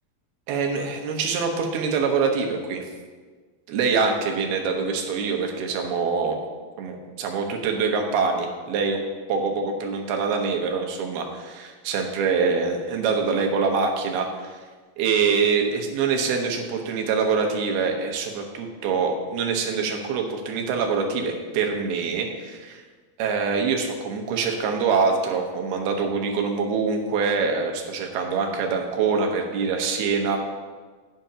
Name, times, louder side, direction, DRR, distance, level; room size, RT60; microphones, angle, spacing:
voice 1, 0.5-2.8 3.7-6.4 6.8-9.0 9.3-14.6 15.0-22.8 23.2-30.4, right 5 dB, 85° right, 2 dB, 3.1 m, -24 dB
16.0 x 7.9 x 2.9 m, 1.4 s
omnidirectional pair, 4.4 m